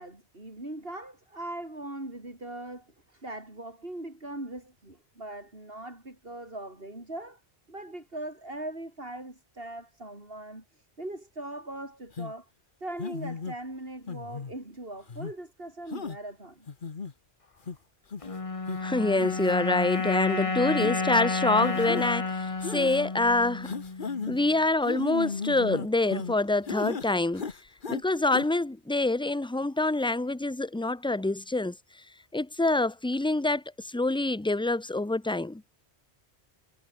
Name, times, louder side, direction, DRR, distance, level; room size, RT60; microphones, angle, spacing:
voice 1, 0.0-7.4 7.7-12.5 12.8-16.7, right 1 dB, 60° right, 6.2 m, -40 dB
sound 1, 12.2-12.3 13.0-13.5 14.1-14.5 15.1-15.3 15.9-16.2 16.7-17.1 17.7-17.8 18.1-18.3 18.7-18.8 19.2-19.5 19.9-20.0 20.8-21.0 21.6-22.1 22.6-23.0 23.6-24.4 24.8-26.3 26.7-27.1 27.3-28.0 28.3-28.4, left 5 dB, 50° left, 1.5 m, -35 dB
sound 2, 18.2-24.6, left 3 dB, 30° left, 1.3 m, -31 dB
voice 2, 18.8-23.7 24.3-27.5 27.9-31.8 32.3-35.6, left 2 dB, 5° left, 0.7 m, -26 dB
omnidirectional pair, 1.1 m